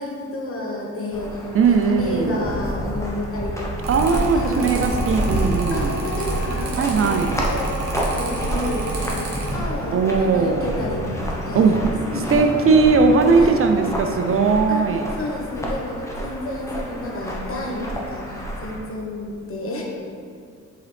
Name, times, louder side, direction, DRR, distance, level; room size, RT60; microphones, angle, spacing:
voice 1, 0.0-3.7 4.3-4.7 5.7-7.7 8.1-11.6 12.1-12.5 13.4-13.6 14.7-19.8, left 1 dB, 45° left, -1 dB, 1.2 m, -31 dB
sound 1, 1.1-18.8, equal, 10° left, 1.1 m, -29 dB
voice 2, 1.5-2.4 3.9-6.0 6.8-7.5 9.9-10.7 11.5-11.8 12.1-15.1, right 4 dB, 45° right, 5 dB, 0.5 m, -19 dB
Mechanical fan, 3.8-9.5, right 3 dB, 60° right, 1.5 m, -28 dB
7.7 x 3.8 x 3.4 m, 2.3 s
cardioid pair, 90°, 30 cm